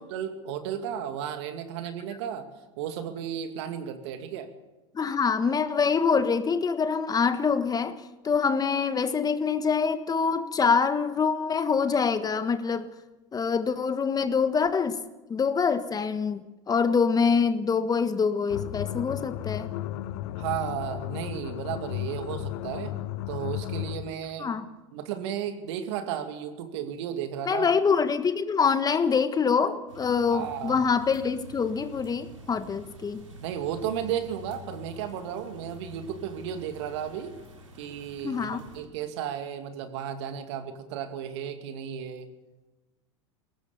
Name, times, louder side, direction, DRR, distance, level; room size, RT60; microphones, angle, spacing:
voice 1, 0.0-2.5 2.8-4.5 20.4-22.9 23.3-24.6 24.9-27.7 30.3-30.8 33.4-37.3 37.8-42.3, right 9 dB, 65° right, 7 dB, 2.4 m, -34 dB
voice 2, 4.9-8.0 8.2-12.9 13.3-15.0 15.3-16.4 16.7-19.7 24.4-24.7 27.4-33.2 38.2-38.6, left 5 dB, 25° left, 11 dB, 1.4 m, -25 dB
sound 1, 18.5-24.2, left 14 dB, 60° left, 1.0 m, -34 dB
sound 2, 29.9-38.8, left 1 dB, 90° right, 3.9 m, -47 dB
21.5 x 18.0 x 7.1 m, 1.1 s
hypercardioid pair, 80°, 16 cm